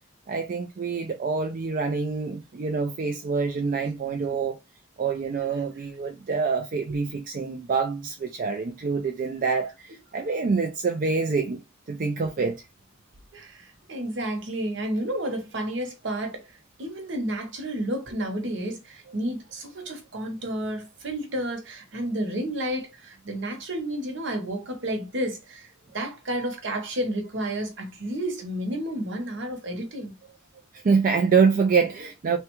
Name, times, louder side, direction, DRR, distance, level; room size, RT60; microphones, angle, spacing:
voice 1, 0.3-4.6 5.0-11.6 11.9-12.6 30.7-32.4, right 5 dB, 45° right, 0.4 m, -26 dB
voice 2, 13.3-16.5 16.8-30.1, right 1 dB, 65° right, 0.9 m, -31 dB
3.4 x 2.2 x 3.0 m
head